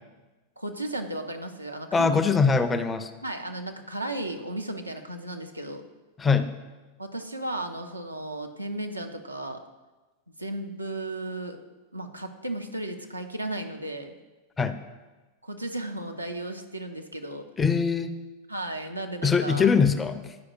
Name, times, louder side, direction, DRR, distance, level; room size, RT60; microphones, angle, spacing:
voice 1, 0.6-2.1 3.2-5.8 7.0-9.6 10.4-11.6 11.9-14.1 15.4-17.4 18.5-19.7, right 1 dB, 85° right, 5 dB, 0.5 m, -34 dB
voice 2, 1.9-3.1 6.2-6.5 14.6-14.8 17.6-18.2 19.2-20.4, left 5 dB, 15° left, 10 dB, 0.4 m, -22 dB
10.0 x 4.8 x 2.4 m, 1.2 s
figure-of-eight pair, 90°, 0 cm